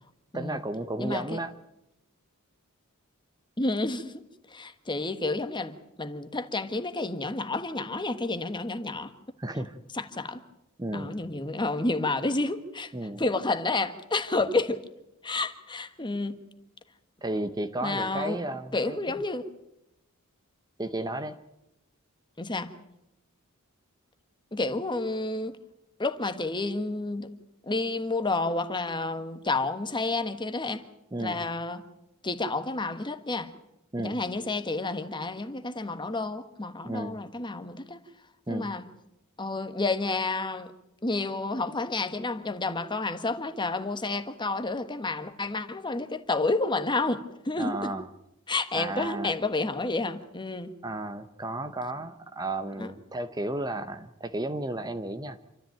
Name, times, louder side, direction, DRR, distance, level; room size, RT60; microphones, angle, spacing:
voice 1, 0.3-1.5 9.4-9.8 10.8-11.2 12.9-13.2 17.2-19.0 20.8-21.4 31.1-31.4 33.9-34.2 36.8-37.2 38.5-38.7 47.6-48.1 48.7-49.3 50.8-55.4, right 1 dB, 20° right, 0.8 m, -33 dB
voice 2, 1.0-1.4 3.6-4.2 4.5-9.1 9.9-10.4 10.9-12.9 13.2-14.8 15.2-16.4 17.8-18.4 18.7-19.5 22.4-22.7 24.5-25.6 26.0-27.3 27.7-30.8 31.2-31.8 32.2-33.5 34.0-38.0 38.5-38.9 39.4-40.7 41.0-47.9 48.5-50.7 52.8-52.9, left 3 dB, 20° left, 1.4 m, -30 dB
27.5 x 13.5 x 9.1 m
head